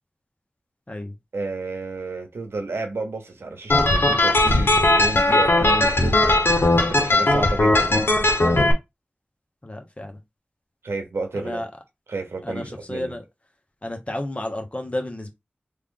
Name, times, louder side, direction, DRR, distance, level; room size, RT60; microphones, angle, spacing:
voice 1, 1.3-6.2 6.9-8.0 10.8-11.6 12.1-13.1, right 3 dB, 90° right, 0.9 m, -31 dB
sound 1, 3.7-8.7, left 2 dB, 65° left, 1.0 m, -18 dB
voice 2, 9.6-10.2 11.3-11.7 12.4-13.2 13.8-15.3, left 1 dB, 30° left, 1.1 m, -31 dB
3.3 x 2.4 x 3.7 m
cardioid pair, 40°, 4 cm